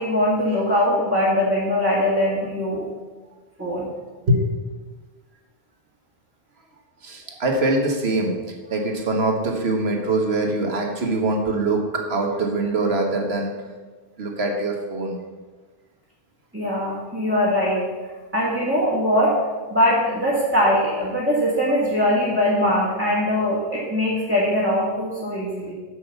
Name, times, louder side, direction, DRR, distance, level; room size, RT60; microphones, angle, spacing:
voice 1, 0.0-2.9 3.6-3.9 16.5-17.9 18.3-19.4 19.7-25.7, left 1 dB, 10° right, -7 dB, 1.8 m, -21 dB
voice 2, 7.0-8.3 8.7-11.8 12.1-13.5 14.2-15.2, right 2 dB, 80° right, 2 dB, 1.7 m, -23 dB
7.8 x 6.3 x 6.9 m, 1.3 s
omnidirectional pair, 1.1 m